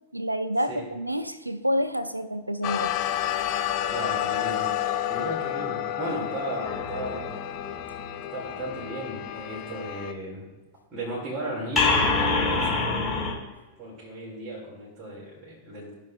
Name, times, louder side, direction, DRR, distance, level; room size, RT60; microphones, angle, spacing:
voice 1, 0.1-2.9, equal, 85° right, 12 dB, 0.5 m, -28 dB
sound 1, 2.6-10.1, left 11 dB, 40° left, 0.6 m, -30 dB
voice 2, 3.8-4.7 5.1-7.3 8.3-10.5 10.9-13.2 13.8-15.9, right 1 dB, 25° right, -6 dB, 2.7 m, -35 dB
sound 2, 6.6-8.7 11.8-13.3, left 3 dB, 15° left, 2.2 m, -26 dB
15.0 x 5.7 x 2.5 m, 1.2 s
figure-of-eight pair, 90°, 0 cm